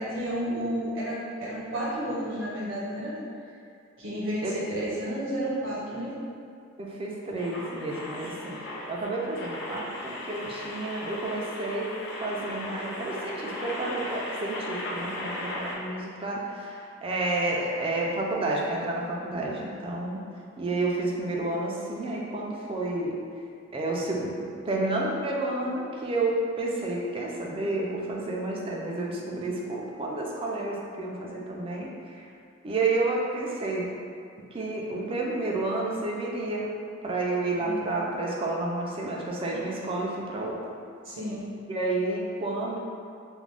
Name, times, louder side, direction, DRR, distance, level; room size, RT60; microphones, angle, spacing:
voice 1, 0.0-3.1 4.0-6.1 37.6-37.9 41.0-41.4, equal, 70° right, -8 dB, 0.9 m, -31 dB
voice 2, 6.8-8.6 8.9-20.2 20.6-23.2 23.7-32.3 32.6-33.9 34.5-36.8 37.0-40.6 41.7-42.8, right 2 dB, 30° right, -2 dB, 0.3 m, -30 dB
sound 1, 7.4-15.7, left 1 dB, 60° left, 0.4 m, -37 dB
2.4 x 2.1 x 3.2 m, 2.3 s
head